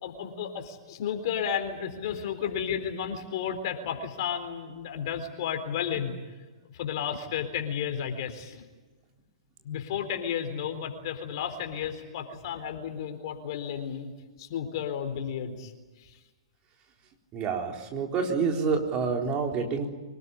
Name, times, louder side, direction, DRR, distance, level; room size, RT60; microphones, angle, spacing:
voice 1, 0.0-6.2 6.7-8.7 9.6-14.1 14.4-15.7 16.0-16.2, left 8 dB, 50° left, 6 dB, 3.9 m, -33 dB
voice 2, 17.3-19.9, right 5 dB, 30° right, 2 dB, 3.9 m, -28 dB
25.5 x 19.5 x 9.8 m, 1.3 s
figure-of-eight pair, 110°, 3 cm